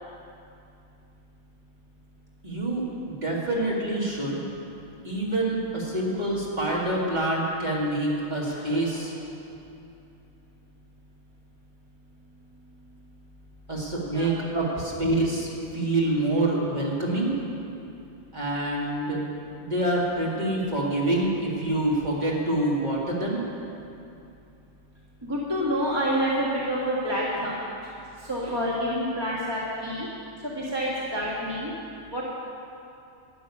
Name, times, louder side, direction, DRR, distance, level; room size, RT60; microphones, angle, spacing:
voice 1, 2.4-4.4 5.0-9.2 13.7-17.4 18.3-19.2 19.6-23.4, right 1 dB, 35° right, -5 dB, 2.3 m, -26 dB
voice 2, 25.2-27.5 28.3-30.1 30.4-31.7 32.1-32.2, equal, 20° right, -6 dB, 1.8 m, -27 dB
12.0 x 6.8 x 9.8 m, 2.7 s
omnidirectional pair, 1.3 m